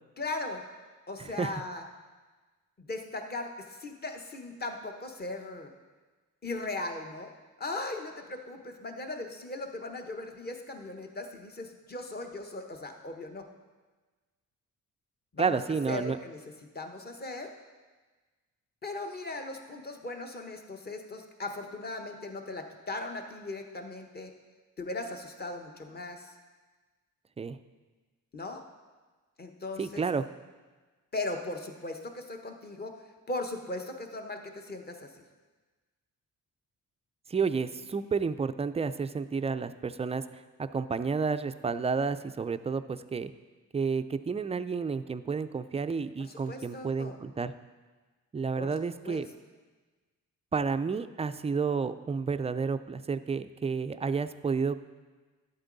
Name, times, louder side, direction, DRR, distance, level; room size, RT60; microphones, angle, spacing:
voice 1, 0.2-0.6 1.1-1.8 2.8-5.7 6.4-7.3 7.6-13.4 15.3-15.6 15.9-16.4 16.7-17.5 18.8-24.3 24.8-26.3 28.3-28.6 29.4-30.0 31.1-35.1 46.2-47.2 48.6-48.7 49.0-49.2, left 2 dB, 30° left, 4 dB, 1.1 m, -38 dB
voice 2, 1.2-1.6 15.4-16.2 27.4-27.6 29.8-30.2 37.3-43.3 43.7-47.5 48.3-49.3 50.5-54.8, right 5 dB, 20° right, 11 dB, 0.3 m, -31 dB
11.5 x 8.0 x 4.0 m, 1.3 s
cardioid pair, 100°, 33 cm